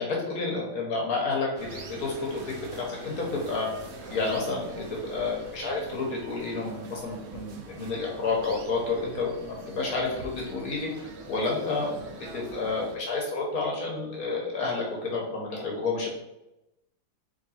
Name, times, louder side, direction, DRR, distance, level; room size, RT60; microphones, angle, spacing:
voice 1, 0.0-3.7 4.1-16.1, left 3 dB, 55° left, -2 dB, 1.2 m, -30 dB
sound 1, 1.6-13.0, right 3 dB, 75° right, 0.7 m, -44 dB
3.9 x 3.1 x 4.1 m, 0.93 s
omnidirectional pair, 2.1 m